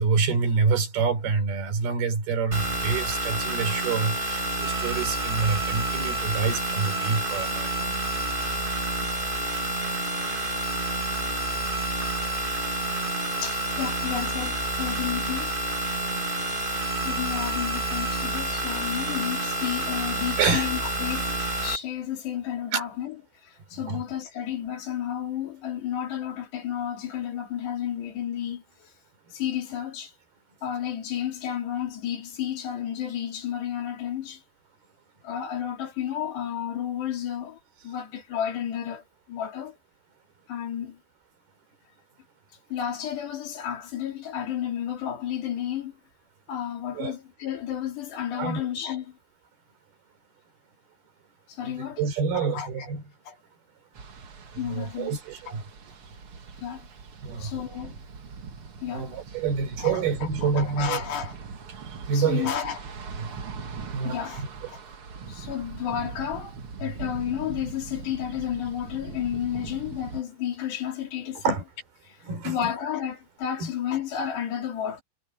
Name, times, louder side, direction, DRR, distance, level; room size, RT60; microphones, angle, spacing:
voice 1, 0.0-8.2 20.4-20.7 22.7-22.9 23.7-24.0 46.9-47.2 48.4-48.6 51.6-53.0 54.5-55.6 57.2-57.6 58.9-61.0 62.1-62.5 63.2-63.4 63.9-64.5 66.8-66.9 71.4-71.6 72.2-72.7 73.6-73.7, right 5 dB, 65° right, 6.0 m, -27 dB
sound 1, 2.5-21.8, right 1 dB, 25° right, 1.0 m, -29 dB
voice 2, 13.4-15.5 17.0-21.4 21.6-23.2 23.4-28.9 29.3-30.1 30.6-34.4 35.2-37.6 37.8-39.7 40.5-41.0 42.7-45.9 46.5-49.2 51.5-52.0 52.5-52.7 53.3-53.4 54.6-55.2 55.5-55.6 56.6-56.9 57.4-58.0 58.8-59.1 59.8-60.0 60.4-61.3 62.1-62.8 64.0-64.4 64.7-64.8 65.3-71.6 72.1-72.2 72.4-75.0, left 10 dB, 85° left, 5.2 m, -32 dB
sound 2, 53.9-70.2, right 5 dB, 45° right, 1.9 m, -41 dB
omnidirectional pair, 4.7 m